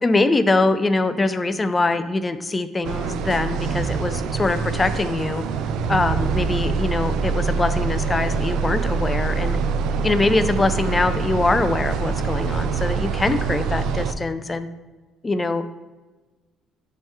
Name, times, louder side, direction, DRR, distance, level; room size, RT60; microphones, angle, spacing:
voice 1, 0.0-5.4 5.9-9.6 10.0-14.7 15.2-15.7, left 2 dB, 20° left, 11 dB, 0.4 m, -23 dB
sound 1, 2.8-14.1, right 5 dB, 75° right, 0.4 m, -24 dB
10.0 x 3.6 x 3.1 m, 1.2 s
cardioid pair, 125°, 0 cm